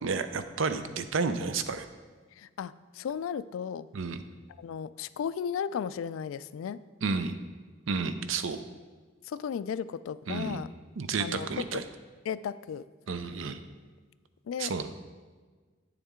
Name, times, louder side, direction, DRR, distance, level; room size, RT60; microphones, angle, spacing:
voice 1, 0.0-1.9 3.9-4.2 7.0-7.4 7.9-8.6 10.3-10.6 11.0-11.9 13.1-13.6 14.6-14.9, right 4 dB, 70° right, 10 dB, 0.6 m, -31 dB
voice 2, 2.4-3.9 4.6-6.8 9.2-10.7 11.2-11.8 12.3-12.9 14.5-14.7, left 7 dB, 80° left, 17 dB, 0.3 m, -35 dB
9.1 x 7.0 x 3.7 m, 1.4 s
head